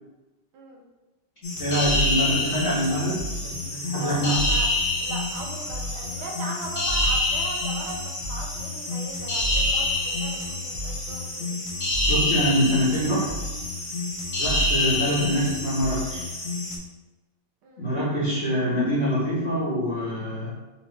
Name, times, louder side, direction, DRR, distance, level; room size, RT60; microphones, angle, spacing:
sound 1, 1.4-16.8, left 1 dB, 70° left, 0.5 m, -27 dB
voice 1, 1.6-4.3 12.1-13.3 14.4-16.3 17.8-20.5, equal, 40° left, -11 dB, 1.1 m, -25 dB
voice 2, 4.0-4.7 5.0-11.5 14.4-14.6 17.6-17.9, right 2 dB, 75° right, -1 dB, 1.6 m, -38 dB
4.1 x 2.9 x 3.2 m, 1.1 s
omnidirectional pair, 2.3 m